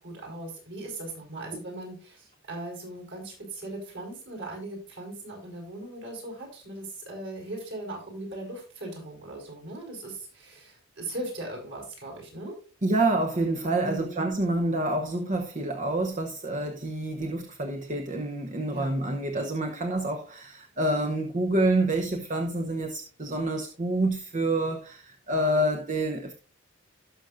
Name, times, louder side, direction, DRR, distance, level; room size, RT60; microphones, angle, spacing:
voice 1, 0.0-12.6 13.8-14.3 18.7-18.9, right 2 dB, 55° right, 4.5 m, -39 dB
voice 2, 12.8-26.3, right 1 dB, 35° right, 0.9 m, -27 dB
17.5 x 6.3 x 2.5 m
head